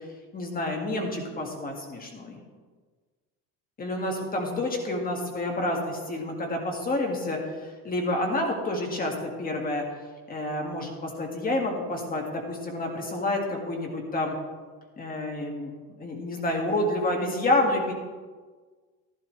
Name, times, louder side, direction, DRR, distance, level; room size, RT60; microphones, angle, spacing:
voice 1, 0.3-2.4 3.8-9.8 10.3-14.4 15.0-15.7 16.0-17.9, left 1 dB, 25° left, 1 dB, 2.0 m, -29 dB
13.5 x 11.5 x 3.3 m, 1.4 s
cardioid pair, 145°, 36 cm